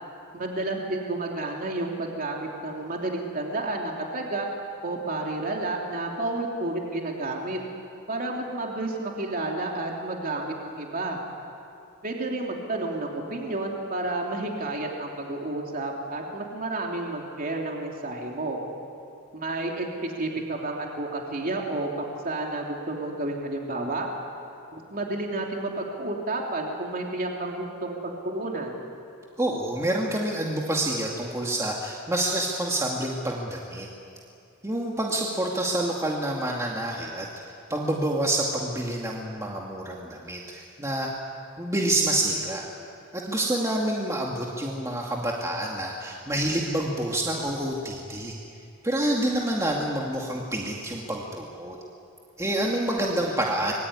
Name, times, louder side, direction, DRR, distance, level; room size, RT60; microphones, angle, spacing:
voice 1, 0.3-4.5 4.8-7.6 8.1-11.2 12.0-18.6 19.3-24.1 24.7-28.8, right 2 dB, 40° right, 0 dB, 3.2 m, -31 dB
voice 2, 29.4-33.9 34.6-37.3 37.7-41.1 41.6-42.6 43.1-48.3 48.8-51.8 52.4-53.7, right 1 dB, 15° right, -2 dB, 2.3 m, -27 dB
26.5 x 23.0 x 9.8 m, 2.5 s
head